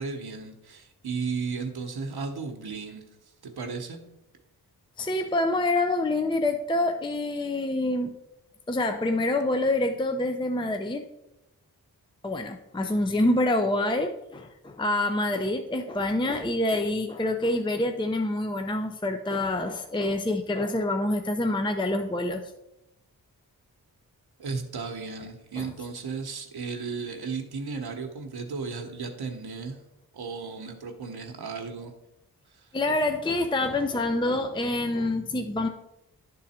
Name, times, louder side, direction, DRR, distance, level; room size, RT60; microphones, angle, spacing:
voice 1, 0.0-3.0 3.4-4.0 24.4-29.8 30.1-31.9 32.5-32.7, right 4 dB, 75° right, 3 dB, 1.0 m, -34 dB
voice 2, 5.0-8.2 8.7-11.0 12.2-22.4 25.6-25.7 32.7-35.7, left 2 dB, 15° left, 5 dB, 0.5 m, -26 dB
10.5 x 3.9 x 4.2 m, 0.91 s
cardioid pair, 60°, 38 cm